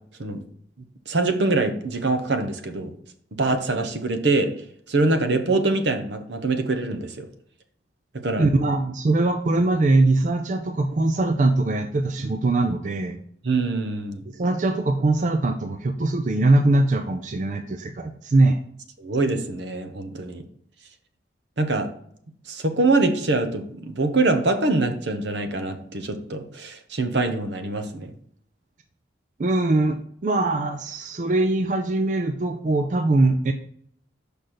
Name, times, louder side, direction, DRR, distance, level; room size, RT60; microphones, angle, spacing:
voice 1, 1.1-2.9 3.3-4.5 4.9-7.3 8.1-8.5 13.4-14.2 19.0-20.4 21.6-21.9 22.5-28.1, right 2 dB, 75° right, 8 dB, 0.9 m, -24 dB
voice 2, 8.4-13.2 14.3-18.6 29.4-33.5, right 2 dB, 40° right, 7 dB, 0.4 m, -22 dB
6.3 x 5.2 x 4.2 m, 0.64 s
head